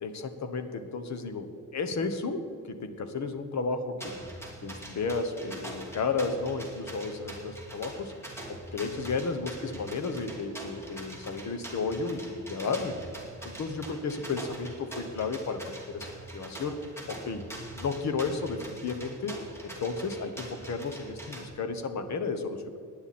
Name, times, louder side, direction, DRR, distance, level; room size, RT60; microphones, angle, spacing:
voice 1, 0.0-1.5 1.7-4.1 4.6-8.1 8.5-12.9 13.4-16.1 16.3-16.8 17.1-17.4 17.7-19.4 19.6-22.8, left 4 dB, 60° left, 8 dB, 1.3 m, -33 dB
sound 1, 4.0-21.5, right 1 dB, 10° left, 2.5 m, -43 dB
18.5 x 10.0 x 4.3 m, 2.5 s
wide cardioid pair, 170°, 32 cm